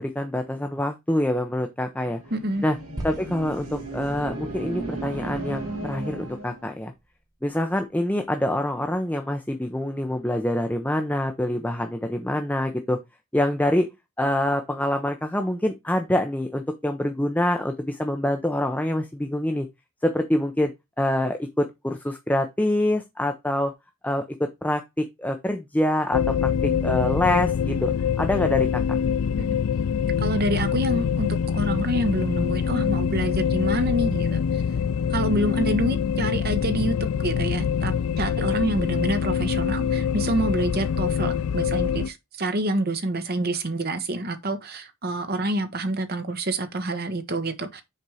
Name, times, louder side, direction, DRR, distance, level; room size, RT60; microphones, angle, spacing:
voice 1, 0.0-2.2 2.6-2.8 3.0-6.9 7.4-13.0 13.3-13.9 14.2-19.7 20.0-20.7 21.0-23.7 24.0-28.8, left 1 dB, 5° left, 0.6 m, -25 dB
sound 1, 2.0-6.7, right 2 dB, 75° right, 3.4 m, -35 dB
voice 2, 2.3-2.6 29.4-29.6 30.2-34.6 35.1-47.8, right 1 dB, 45° right, 1.1 m, -27 dB
sound 2, 3.0-7.3, right 1 dB, 15° right, 1.7 m, -43 dB
sound 3, 26.1-42.1, left 7 dB, 80° left, 0.4 m, -24 dB
6.8 x 4.4 x 4.8 m
head